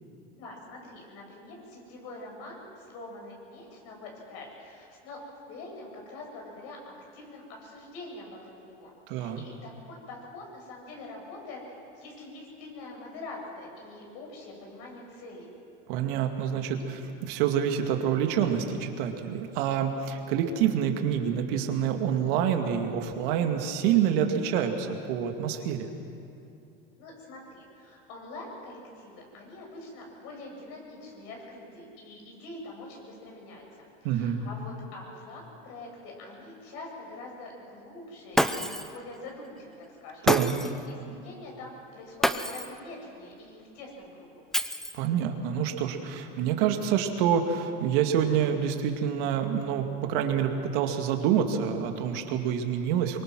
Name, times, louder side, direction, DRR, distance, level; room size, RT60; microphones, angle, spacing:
voice 1, 0.3-5.2 5.5-15.5 27.0-40.3 40.9-44.4, left 2 dB, 60° left, 0 dB, 7.8 m, -44 dB
voice 2, 9.1-9.4 15.9-25.9 34.0-34.4 40.2-40.5 44.9-53.2, right 8 dB, 65° right, 4 dB, 2.2 m, -27 dB
Shatter, 38.3-39.0 40.3-40.8 42.2-42.8 44.5-45.2, equal, ahead, 0.7 m, -27 dB
23.5 x 22.5 x 6.2 m, 2.6 s
supercardioid pair, 115°, 29 cm